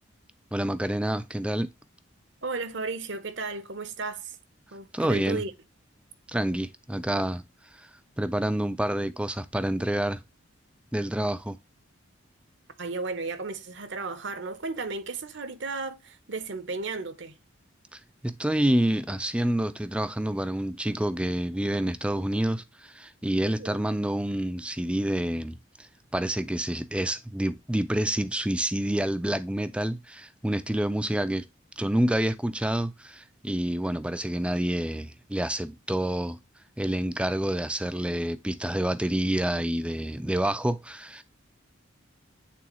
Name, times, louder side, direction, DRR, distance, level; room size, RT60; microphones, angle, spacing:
voice 1, 0.5-1.7 4.9-5.4 6.3-7.4 7.7-7.9 8.2-10.2 10.9-11.6 17.9-31.4 31.8-36.4 36.8-41.2, right 1 dB, 5° right, 0.4 m, -28 dB
voice 2, 2.4-4.4 4.7-5.5 12.8-17.4 23.4-23.8, right 3 dB, 60° right, 0.9 m, -34 dB
8.5 x 3.9 x 2.9 m
head